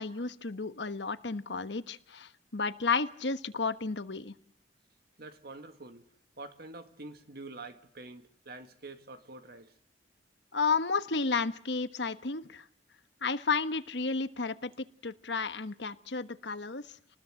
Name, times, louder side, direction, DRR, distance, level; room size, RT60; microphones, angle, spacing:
voice 1, 0.0-4.3 10.5-12.6 13.2-16.8, left 4 dB, 75° left, 1.3 m, -32 dB
voice 2, 5.2-6.1 6.4-9.7, right 2 dB, 60° right, 1.9 m, -46 dB
28.0 x 20.0 x 7.6 m
head